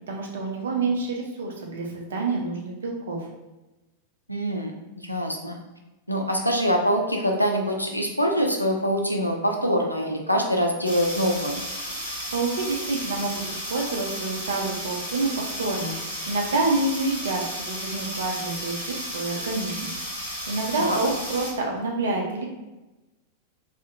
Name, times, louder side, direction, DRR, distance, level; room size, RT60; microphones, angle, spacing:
voice 1, 0.1-3.3 11.9-19.9 20.5-22.5, right 3 dB, 65° right, 0 dB, 0.5 m, -28 dB
voice 2, 4.3-4.7 5.0-5.6 6.1-11.6 20.8-21.0, equal, 90° left, 2 dB, 0.3 m, -24 dB
sound 1, 10.8-21.5, equal, 85° right, 0.9 m, -33 dB
2.5 x 2.1 x 2.5 m, 1.1 s
figure-of-eight pair, 90°, 0 cm